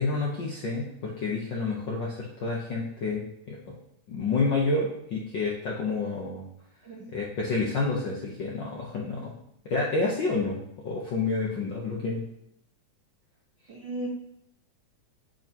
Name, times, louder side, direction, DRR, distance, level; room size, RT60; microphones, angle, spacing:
voice 1, 0.0-3.7 4.1-6.4 7.1-9.3 9.6-10.6 10.8-12.3, left 3 dB, 60° left, -3 dB, 1.2 m, -29 dB
voice 2, 13.7-14.1, right 1 dB, 55° right, -2 dB, 1.4 m, -35 dB
9.1 x 8.3 x 3.0 m, 0.77 s
omnidirectional pair, 3.3 m